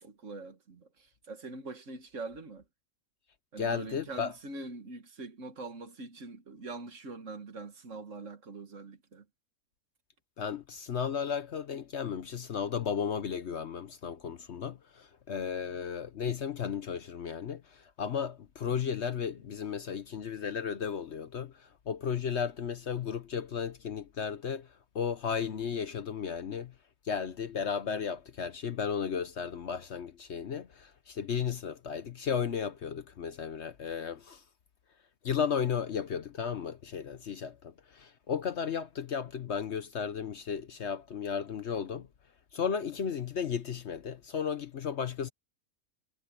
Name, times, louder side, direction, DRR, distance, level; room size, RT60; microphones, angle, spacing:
voice 1, 0.0-2.6 3.5-9.3 15.6-15.8, right 3 dB, 55° right, 1.9 m, -43 dB
voice 2, 3.6-4.3 10.4-24.7 24.9-26.7 27.0-34.4 35.2-42.1 42.5-45.3, left 7 dB, 55° left, 1.0 m, -34 dB
omnidirectional pair, 1.5 m